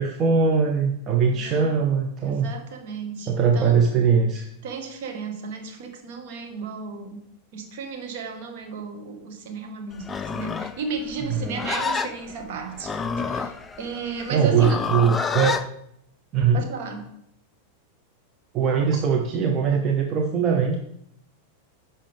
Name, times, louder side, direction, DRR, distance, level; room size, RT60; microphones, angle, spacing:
voice 1, 0.0-2.5 3.3-4.5 11.3-11.6 14.3-15.6 16.3-16.6 18.5-20.8, right 6 dB, 30° right, 2 dB, 0.8 m, -21 dB
voice 2, 1.3-1.7 2.2-3.8 4.6-7.2 7.5-12.9 13.3-14.8 16.5-17.1, right 5 dB, 50° right, 4 dB, 1.6 m, -34 dB
Livestock farm animals working animals, 10.0-15.7, left 5 dB, 15° left, 0.5 m, -29 dB
10.0 x 5.6 x 3.5 m, 0.75 s
figure-of-eight pair, 90°, 0 cm